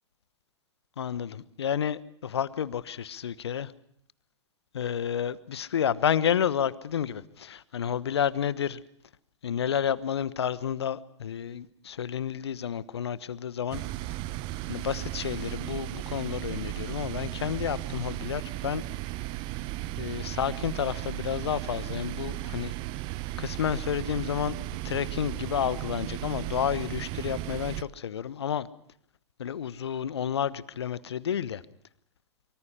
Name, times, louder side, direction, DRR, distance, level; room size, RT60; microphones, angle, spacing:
voice 1, 1.0-3.7 4.7-8.8 9.4-13.8 14.7-18.8 20.0-22.7 23.4-24.6 24.8-28.7 29.4-31.6, left 8 dB, 60° left, 18 dB, 1.1 m, -30 dB
sound 1, 13.7-27.8, right 17 dB, 30° right, 0.8 m, -35 dB
24.0 x 24.0 x 5.6 m, 0.68 s
figure-of-eight pair, 105°, 15 cm